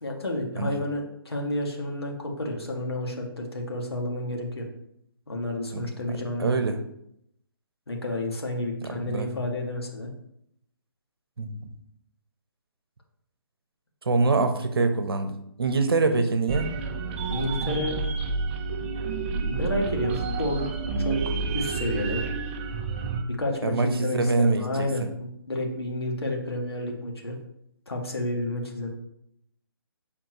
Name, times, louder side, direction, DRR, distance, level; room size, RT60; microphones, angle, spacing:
voice 1, 0.0-4.7 5.3-6.6 7.9-10.1 16.1-16.2 17.3-18.0 19.4-20.7 21.0-22.2 23.3-27.4 27.9-28.9, left 1 dB, 90° left, 0 dB, 1.7 m, -30 dB
voice 2, 5.7-6.8 8.9-9.3 11.4-11.7 14.0-16.7 23.6-25.1, right 3 dB, 70° right, 8 dB, 1.0 m, -25 dB
sound 1, 16.5-23.2, right 4 dB, 30° right, 0.7 m, -29 dB
7.6 x 4.3 x 3.0 m, 0.75 s
figure-of-eight pair, 145°, 13 cm